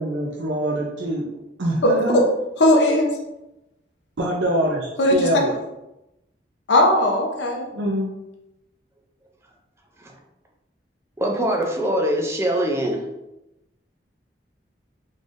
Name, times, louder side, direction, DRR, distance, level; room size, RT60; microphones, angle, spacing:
voice 1, 0.0-1.3 1.6-2.2 4.2-5.6 7.7-8.1, right 1 dB, 90° right, -2 dB, 0.6 m, -24 dB
voice 2, 1.8-2.2 2.6-3.1 5.0-5.3 6.7-7.7, left 1 dB, 80° left, 0 dB, 0.7 m, -18 dB
voice 3, 11.2-13.0, right 1 dB, 15° right, 1 dB, 0.4 m, -23 dB
3.8 x 3.3 x 2.5 m, 0.91 s
head